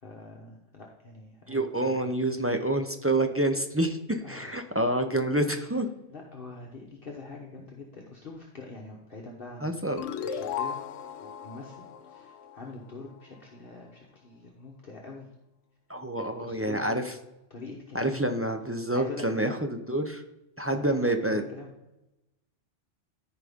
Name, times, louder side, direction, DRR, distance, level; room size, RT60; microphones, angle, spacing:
voice 1, 0.0-2.1 4.2-4.7 5.5-5.7 6.1-10.8 11.2-15.3 16.2-17.0 17.5-18.3 18.9-19.5 20.7-21.7, left 3 dB, 50° left, -1 dB, 1.2 m, -44 dB
voice 2, 1.5-5.9 9.6-10.0 15.9-17.1 17.9-19.5 19.9-20.2 20.6-21.4, right 1 dB, 20° right, 5 dB, 0.4 m, -27 dB
sound 1, 10.0-13.2, left 7 dB, 80° left, 0.9 m, -36 dB
13.5 x 4.9 x 3.6 m, 0.93 s
omnidirectional pair, 1.3 m